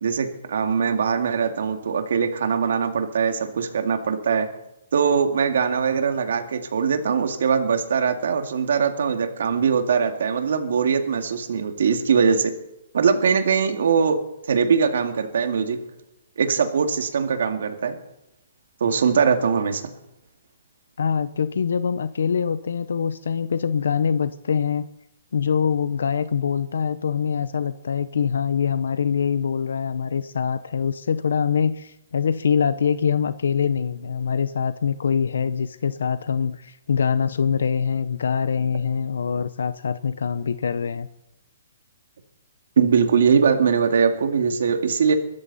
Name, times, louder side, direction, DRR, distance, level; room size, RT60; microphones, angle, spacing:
voice 1, 0.0-4.5 4.9-12.5 12.9-14.2 14.5-15.8 16.4-18.0 18.8-19.9 42.8-45.1, right 6 dB, 65° right, 6 dB, 2.3 m, -21 dB
voice 2, 21.0-24.9 25.3-41.1, left 6 dB, 80° left, 14 dB, 0.8 m, -24 dB
22.5 x 13.0 x 4.2 m, 0.87 s
hypercardioid pair, 165°, 0 cm